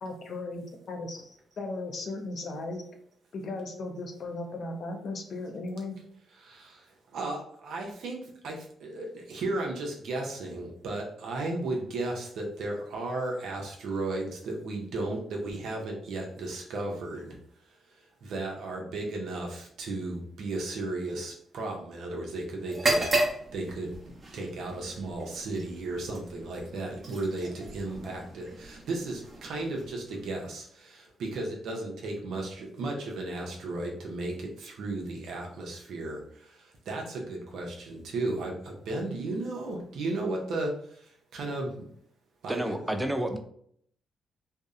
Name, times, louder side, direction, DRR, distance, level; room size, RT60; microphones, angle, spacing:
voice 1, 0.0-2.8 3.3-6.0, left 2 dB, 60° left, 4 dB, 0.5 m, -36 dB
voice 2, 6.4-6.8 7.1-8.2 8.4-17.4 18.2-23.1 23.5-23.9 24.3-36.2 36.9-40.7 41.3-41.7 42.4-43.0, right 2 dB, 75° right, 0 dB, 0.6 m, -34 dB
sound 1, 22.7-30.5, right 2 dB, 35° right, 0.8 m, -34 dB
voice 3, 42.5-43.4, right 1 dB, 10° right, 6 dB, 0.3 m, -30 dB
2.6 x 2.0 x 2.4 m, 0.66 s
cardioid pair, 85°, 0 cm